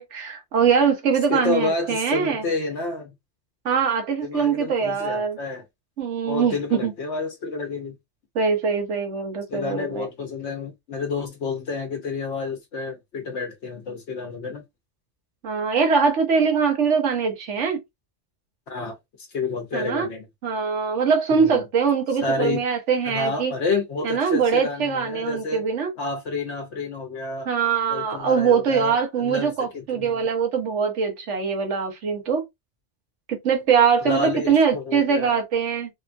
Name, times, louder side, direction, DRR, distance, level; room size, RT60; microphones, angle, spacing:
voice 1, 0.0-2.4 3.6-5.4 6.0-6.9 8.3-10.1 15.4-17.8 19.7-20.1 20.4-23.5 24.0-25.9 27.5-32.4 33.3-35.9, right 6 dB, 85° right, 1.3 m, -22 dB
voice 2, 1.3-3.1 4.2-5.6 6.3-8.0 9.5-14.6 18.7-19.0 19.3-20.3 21.3-21.6 22.2-22.6 23.0-25.6 26.0-27.5 27.9-30.2 34.0-35.3, left 3 dB, 75° left, 1.0 m, -29 dB
3.4 x 2.2 x 2.5 m
omnidirectional pair, 1.2 m